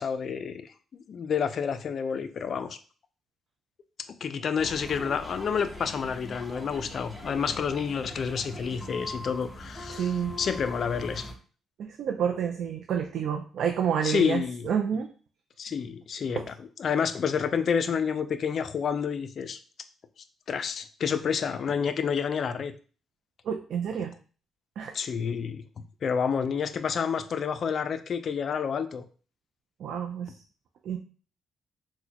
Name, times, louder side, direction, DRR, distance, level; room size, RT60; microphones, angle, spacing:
voice 1, 0.0-2.8 4.0-11.3 14.0-14.7 15.6-19.6 20.5-22.7 24.9-25.6 26.0-29.0, left 6 dB, 55° left, 11 dB, 0.3 m, -29 dB
sound 1, 4.6-11.3, left 1 dB, ahead, 0.8 m, -41 dB
voice 2, 9.9-10.4 11.8-15.1 16.4-16.5 23.4-24.1 24.8-24.9 29.8-30.3 30.8-31.0, right 8 dB, 70° right, 3 dB, 0.3 m, -29 dB
4.0 x 2.1 x 2.8 m, 0.39 s
cardioid pair, 90°, 0 cm